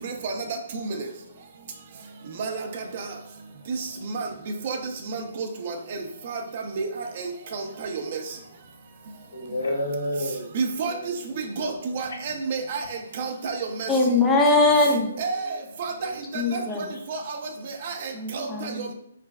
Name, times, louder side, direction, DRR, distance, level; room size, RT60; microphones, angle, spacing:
voice 1, 2.4-3.0 3.7-3.8 4.1-4.3 4.6-4.8 5.1-5.7 6.3-6.9 7.2-8.2 10.5-11.1 11.6-12.8 13.2-13.9 15.2-15.9 16.5-16.6 17.1-17.4 17.8-18.7, right 4 dB, 40° right, 4 dB, 0.5 m, -30 dB
voice 2, 9.3-10.5 10.8-11.2 15.4-15.5 15.9-16.1 18.0-18.1, left 1 dB, 90° left, 0 dB, 1.4 m, -30 dB
voice 3, 13.9-15.1 16.3-16.9 18.1-18.9, left 2 dB, 5° left, -2 dB, 0.4 m, -21 dB
3.9 x 3.2 x 2.3 m, 0.72 s
hypercardioid pair, 165°, 0 cm